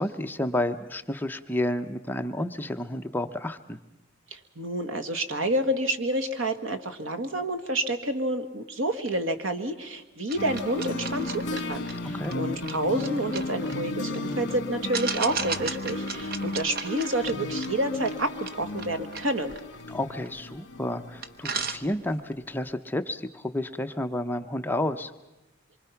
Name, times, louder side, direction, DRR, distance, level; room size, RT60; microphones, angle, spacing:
voice 1, 0.0-3.8 12.0-12.3 19.9-25.1, left 1 dB, 10° left, 7 dB, 0.7 m, -30 dB
voice 2, 4.3-19.6, right 1 dB, 80° right, 9 dB, 1.7 m, -29 dB
sound 1, 10.3-14.3 14.9-20.6 20.9-21.0 21.2-22.3, right 5 dB, 45° right, 0.9 m, -37 dB
sound 2, 10.4-21.9, left 2 dB, 55° left, 1.3 m, -34 dB
26.0 x 24.0 x 5.8 m, 1.0 s
head